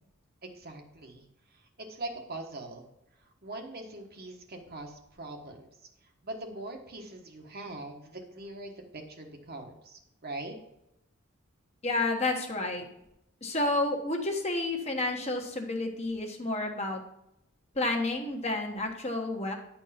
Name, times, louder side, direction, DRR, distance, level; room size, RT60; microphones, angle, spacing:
voice 1, 0.4-1.2 1.5-2.8 3.4-5.7 6.2-10.5, right 2 dB, 45° right, 3 dB, 1.3 m, -42 dB
voice 2, 11.8-12.9 13.4-17.0 17.7-19.5, left 2 dB, 30° left, 2 dB, 1.2 m, -30 dB
9.8 x 4.6 x 5.7 m, 0.83 s
head